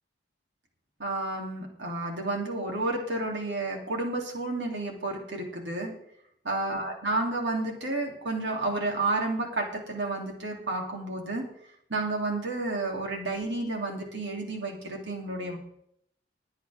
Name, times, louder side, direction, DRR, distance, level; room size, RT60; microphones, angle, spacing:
voice 1, 1.0-5.9 6.4-11.4 11.9-15.6, right 2 dB, 75° right, 1 dB, 3.1 m, -31 dB
21.0 x 8.2 x 3.6 m, 0.71 s
head